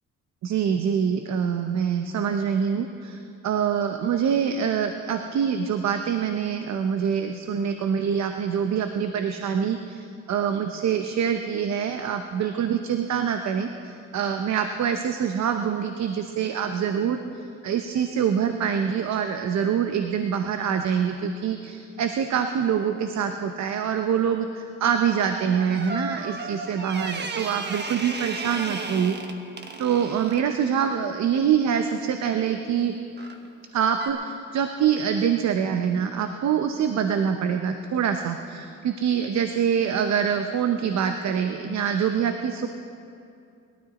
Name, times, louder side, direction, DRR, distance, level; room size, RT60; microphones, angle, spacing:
voice 1, 0.4-3.2 3.4-29.2 29.8-32.9 33.7-42.7, right 7 dB, 65° right, 6 dB, 0.8 m, -25 dB
sound 1, 25.2-30.5 33.2-33.5 34.0-34.1, right 3 dB, 35° right, 1.2 m, -34 dB
21.0 x 12.5 x 4.2 m, 2.5 s
cardioid pair, 90°, 30 cm